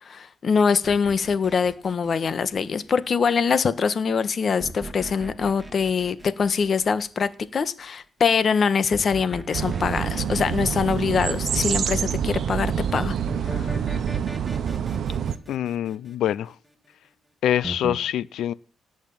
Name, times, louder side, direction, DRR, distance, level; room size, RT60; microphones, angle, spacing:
voice 1, 0.0-13.1 13.4-13.7, left 6 dB, 45° left, 1.5 m, -23 dB
sound 1, 0.8-3.0 4.6-7.3 8.9-11.8 13.3-16.7 17.6-18.0, right 1 dB, 10° right, 2.7 m, -39 dB
sound 2, 9.5-15.3, right 8 dB, 65° right, 1.1 m, -26 dB
voice 2, 15.5-16.5 17.4-18.5, left 11 dB, 75° left, 0.7 m, -25 dB
17.5 x 6.5 x 8.9 m
cardioid pair, 90°, 0 cm